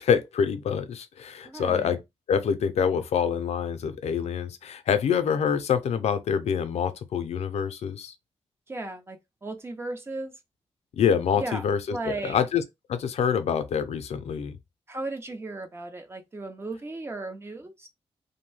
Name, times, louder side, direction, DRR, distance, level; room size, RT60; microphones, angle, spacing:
voice 1, 0.0-2.0 2.3-8.1 11.0-12.6 12.9-14.6, left 7 dB, 80° left, 0.4 m, -26 dB
voice 2, 1.4-2.0 8.7-10.4 11.4-11.6 11.9-12.4 14.9-17.9, right 2 dB, 20° right, 0.5 m, -36 dB
2.6 x 2.1 x 3.1 m
wide cardioid pair, 165°, 11 cm